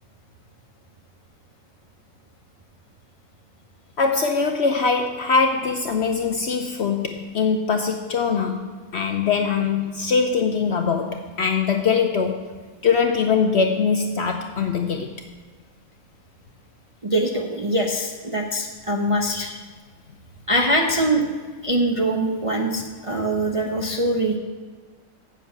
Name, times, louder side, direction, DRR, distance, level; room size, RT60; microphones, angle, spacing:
voice 1, 4.0-8.6 8.9-12.5 12.8-15.1, left 5 dB, 60° left, 4 dB, 0.7 m, -22 dB
voice 2, 17.0-19.6 20.5-21.2 21.6-24.4, right 1 dB, 35° right, 0 dB, 0.5 m, -23 dB
7.5 x 6.4 x 7.9 m, 1.4 s
omnidirectional pair, 1.6 m